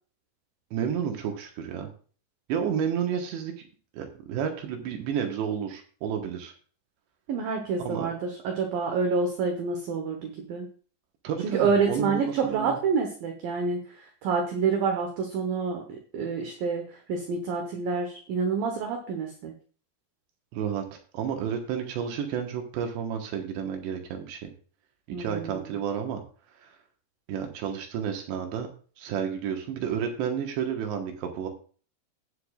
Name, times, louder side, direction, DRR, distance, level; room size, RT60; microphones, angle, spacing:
voice 1, 0.7-1.9 2.5-3.5 3.9-6.5 7.8-8.1 11.2-12.8 20.5-20.8 21.1-24.5 25.2-26.2 27.3-28.7 29.0-31.5, right 8 dB, 85° right, 4 dB, 3.5 m, -31 dB
voice 2, 7.3-10.7 11.4-15.8 16.1-16.8 17.1-19.5 25.1-25.8, right 5 dB, 70° right, 3 dB, 2.5 m, -28 dB
18.0 x 6.9 x 2.4 m, 0.41 s
omnidirectional pair, 4.9 m